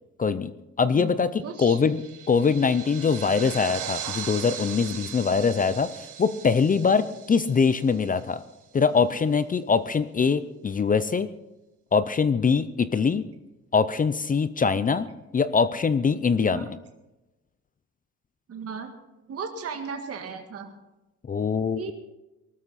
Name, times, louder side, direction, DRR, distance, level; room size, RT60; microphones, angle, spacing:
voice 1, 0.2-0.5 0.8-5.9 6.2-8.4 8.7-11.3 11.9-13.2 13.7-15.1 15.3-16.8 21.3-21.9, left 5 dB, 25° left, 14 dB, 0.6 m, -23 dB
voice 2, 1.4-1.8 12.9-13.2 16.5-16.7 18.5-18.9 19.3-20.7 21.7-21.9, right 5 dB, 50° right, 4 dB, 1.8 m, -36 dB
sound 1, 1.6-8.4, right 9 dB, 85° right, 1.5 m, -39 dB
19.5 x 13.0 x 4.2 m, 0.99 s
cardioid pair, 135°, 30 cm